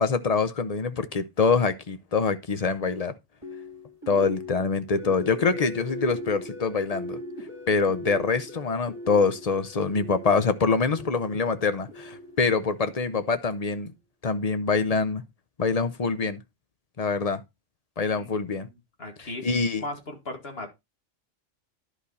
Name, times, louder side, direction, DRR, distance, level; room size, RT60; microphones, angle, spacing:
voice 1, 0.0-3.1 4.1-7.2 7.7-13.9 14.2-15.2 15.6-16.4 17.0-17.4 18.0-18.7 19.4-19.8, left 4 dB, 35° left, 0.7 m, -25 dB
sound 1, 3.4-13.5, left 1 dB, 25° right, 1.7 m, -40 dB
voice 2, 18.1-19.5 19.8-20.7, left 2 dB, 55° left, 2.2 m, -38 dB
11.0 x 5.0 x 4.1 m
omnidirectional pair, 1.3 m